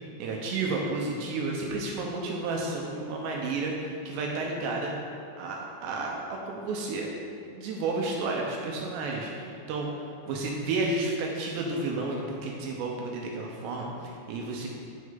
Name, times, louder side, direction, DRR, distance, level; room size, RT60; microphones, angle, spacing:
voice 1, 0.2-4.9 5.4-7.1 7.5-9.9 10.3-14.7, right 3 dB, 80° right, -1 dB, 2.8 m, -31 dB
9.6 x 6.4 x 3.7 m, 2.4 s
omnidirectional pair, 5.3 m